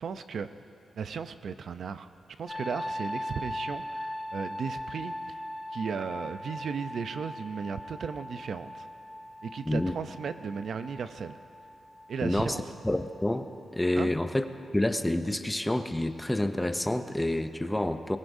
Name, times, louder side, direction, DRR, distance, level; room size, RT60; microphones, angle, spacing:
voice 1, 0.0-0.5 0.9-2.1 2.4-5.4 5.7-8.9 9.4-11.4 12.1-12.7 13.9-14.1, right 6 dB, 65° right, 11 dB, 0.5 m, -35 dB
sound 1, 2.5-14.2 14.5-14.9, left 1 dB, 10° right, 3.4 m, -40 dB
voice 2, 12.2-12.6 12.8-13.5 13.7-14.5 14.7-18.2, left 1 dB, 10° left, 9 dB, 0.5 m, -28 dB
22.0 x 19.0 x 2.7 m, 2.5 s
wide cardioid pair, 145°, 0 cm